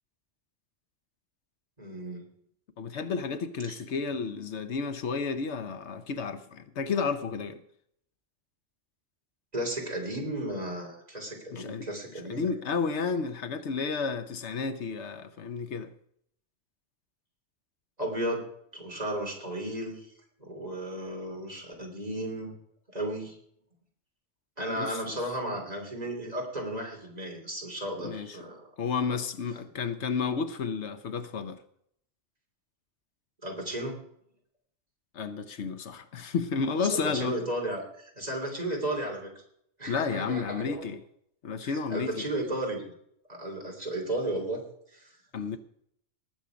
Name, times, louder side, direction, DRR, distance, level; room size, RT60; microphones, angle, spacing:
voice 1, 1.8-2.2 3.6-3.8 9.5-12.5 18.0-18.4 18.7-20.1 20.4-22.5 22.9-23.3 24.6-28.6 33.4-34.0 36.8-39.3 39.8-40.9 41.6-42.8 43.3-44.6 44.9-45.2, right 1 dB, 35° right, 3.2 m, -34 dB
voice 2, 2.8-7.6 11.5-11.9 12.3-15.9 24.8-25.2 28.0-28.4 28.8-31.6 35.1-37.4 39.9-41.0 41.4-42.3 45.3-45.6, left 5 dB, 75° left, 1.2 m, -31 dB
19.5 x 7.2 x 5.1 m
omnidirectional pair, 1.2 m